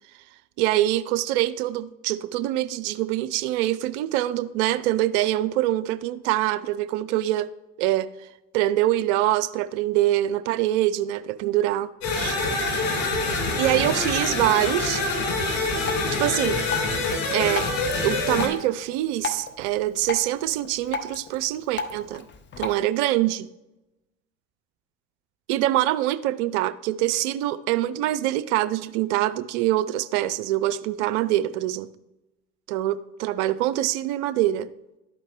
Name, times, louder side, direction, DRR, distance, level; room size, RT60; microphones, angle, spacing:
voice 1, 0.6-7.5 7.8-8.1 8.5-12.4 13.6-15.1 16.0-16.6 17.3-17.7 18.0-22.2 22.6-23.5 25.5-31.9 32.7-34.7, right 14 dB, 65° right, 12 dB, 0.6 m, -24 dB
sound 1, 12.0-18.5, left 3 dB, 65° left, 2.1 m, -25 dB
Drip, 15.8-22.8, left 4 dB, 30° left, 0.8 m, -36 dB
12.0 x 4.5 x 3.0 m, 0.96 s
hypercardioid pair, 70°, 37 cm